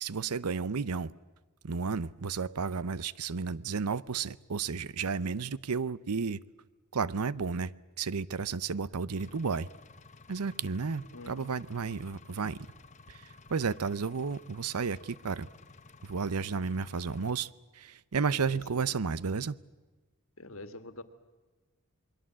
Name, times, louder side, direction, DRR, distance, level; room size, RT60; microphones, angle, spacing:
voice 1, 0.0-1.1 1.6-6.4 6.9-9.7 10.3-12.6 13.1-15.5 16.0-17.5 17.7-19.6, right 5 dB, 85° right, 20 dB, 0.7 m, -32 dB
Engine, 9.2-17.3, left 3 dB, 35° left, 1.0 m, -54 dB
voice 2, 11.1-11.5 18.3-19.0 20.4-21.0, left 2 dB, 60° left, 10 dB, 1.8 m, -46 dB
28.0 x 21.5 x 7.5 m, 1.3 s
head